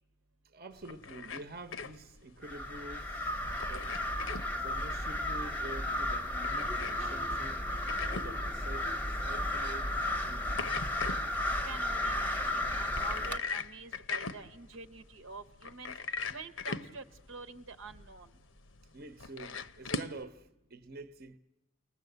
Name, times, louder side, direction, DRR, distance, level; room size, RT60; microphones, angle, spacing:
voice 1, 0.4-4.0 4.6-7.6 8.1-10.8 18.9-21.4, right 2 dB, 50° right, 0.9 m, -48 dB
sound 1, 0.7-20.2, left 4 dB, 75° left, 0.9 m, -42 dB
sound 2, 2.4-13.4, left 1 dB, 10° left, 0.8 m, -34 dB
voice 2, 11.6-15.9 16.3-18.3, right 4 dB, 75° right, 1.0 m, -47 dB
30.0 x 20.0 x 8.0 m
head